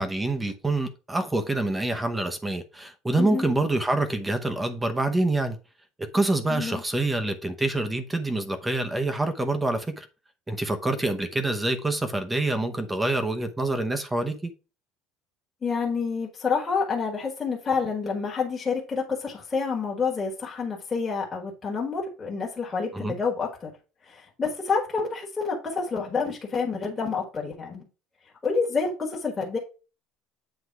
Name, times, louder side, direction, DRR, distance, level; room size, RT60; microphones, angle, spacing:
voice 1, 0.0-5.6 6.0-10.1 10.5-14.5 22.9-23.2, right 2 dB, 10° right, 0.8 m, -26 dB
voice 2, 6.5-6.8 15.6-23.7 24.0-27.9 28.4-29.6, left 5 dB, 15° left, 1.6 m, -28 dB
8.1 x 3.5 x 4.7 m
cardioid pair, 155°, 0 cm